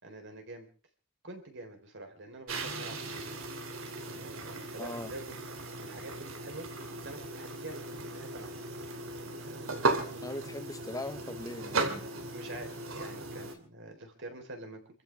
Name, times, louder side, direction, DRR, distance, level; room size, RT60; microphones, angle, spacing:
voice 1, 0.0-0.7 1.2-3.4 4.1-5.4 5.8-6.7 7.0-8.5 9.4-10.0 10.3-10.6 12.3-14.8, right 2 dB, 60° right, 4.0 m, -46 dB
sound 1, 2.5-13.5, right 3 dB, 80° right, 3.0 m, -37 dB
voice 2, 4.8-5.1 10.2-12.1, left 2 dB, 15° left, 1.1 m, -40 dB
28.0 x 15.0 x 3.5 m
head